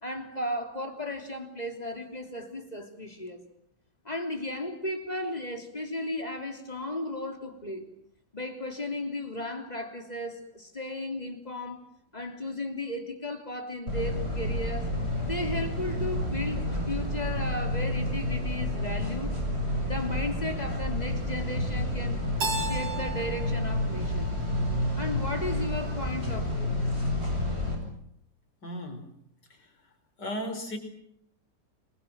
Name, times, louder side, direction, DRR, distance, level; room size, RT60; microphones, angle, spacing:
voice 1, 0.0-3.4 4.1-7.9 8.3-14.9 15.3-19.4 19.8-22.2 22.5-24.3 25.0-26.8, left 1 dB, 20° left, 3.4 m, -35 dB
sound 1, 13.9-27.7, left 1 dB, 35° right, 7.9 m, -30 dB
Keyboard (musical), 22.4-25.2, right 1 dB, 75° right, 5.0 m, -36 dB
voice 2, 28.6-29.0 29.5-29.7 30.2-30.8, equal, 65° left, 5.7 m, -35 dB
29.0 x 22.5 x 7.5 m
omnidirectional pair, 2.0 m